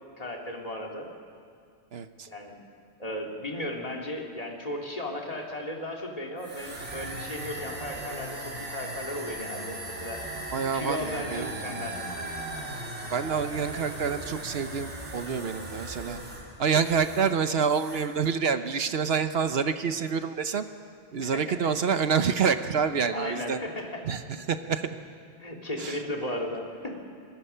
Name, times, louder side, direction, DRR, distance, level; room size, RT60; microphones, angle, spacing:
voice 1, 0.2-1.1 2.3-2.6 3.0-10.2 10.7-12.0 12.3-12.4 21.2-21.6 23.1-24.4 25.4-27.0, left 1 dB, 30° left, 0 dB, 2.6 m, -35 dB
voice 2, 1.9-2.3 10.5-11.5 13.1-16.2 16.6-20.6 21.1-23.6 24.0-24.2 24.5-25.0 25.8-26.0, right 6 dB, 60° right, 10 dB, 1.0 m, -27 dB
sound 1, 6.4-17.4 17.6-18.2, right 1 dB, 85° right, 3.0 m, -38 dB
25.0 x 21.0 x 5.7 m, 2.3 s
omnidirectional pair, 1.2 m